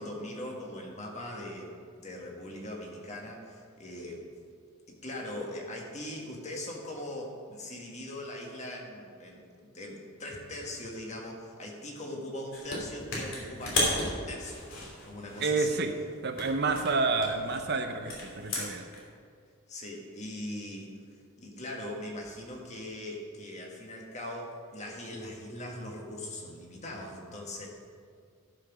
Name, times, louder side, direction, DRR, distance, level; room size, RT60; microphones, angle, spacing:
voice 1, 0.0-4.2 4.9-14.7 15.0-15.8 19.7-20.9 21.4-27.7, left 1 dB, 30° left, 0 dB, 1.6 m, -40 dB
sound 1, 12.5-12.8 13.1-15.9 16.3-19.0, left 2 dB, 60° left, 2.9 m, -34 dB
voice 2, 15.4-16.0 16.2-18.9, right 3 dB, 50° right, 6 dB, 0.6 m, -29 dB
13.0 x 5.9 x 6.0 m, 2.1 s
head